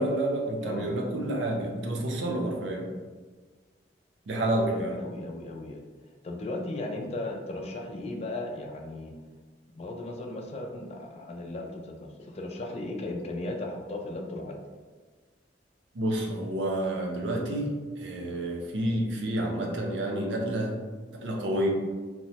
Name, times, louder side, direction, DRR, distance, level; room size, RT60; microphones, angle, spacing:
voice 1, 0.0-2.9 4.3-5.0 15.9-20.8 21.1-21.7, right 1 dB, 90° right, 0 dB, 0.5 m, -29 dB
voice 2, 0.6-0.9 4.7-5.8 6.2-9.1 9.7-14.6, left 2 dB, 35° left, 2 dB, 0.3 m, -36 dB
3.0 x 2.1 x 2.7 m, 1.4 s
head